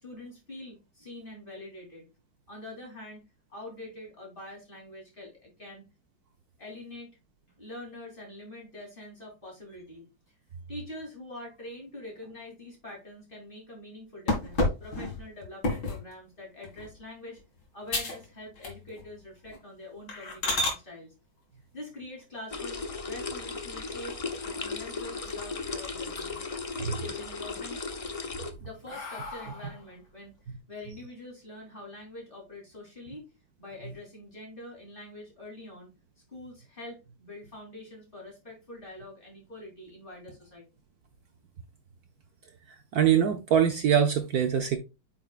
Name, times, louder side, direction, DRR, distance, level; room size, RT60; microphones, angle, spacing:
voice 1, 0.0-2.1 2.5-3.2 3.5-5.8 6.6-7.1 7.6-10.0 10.7-17.4 17.7-21.1 21.7-26.4 26.8-27.8 28.6-33.2 33.6-35.9 36.3-40.6, left 1 dB, 25° left, 3.5 m, -45 dB
sound 1, 14.3-16.1 16.6-16.9 17.4-17.5 17.9-18.3 18.6-19.1 19.4-19.6 20.1-20.8 22.8-23.5 23.9-24.0 24.4-24.5 24.8-25.6 26.0-26.6 27.0-27.6 28.1-29.9, left 2 dB, 80° left, 2.9 m, -32 dB
sound 2, 22.5-28.5, left 4 dB, 50° left, 0.4 m, -36 dB
voice 2, 42.9-44.8, right 8 dB, 60° right, 1.2 m, -23 dB
8.7 x 5.9 x 2.4 m
omnidirectional pair, 2.0 m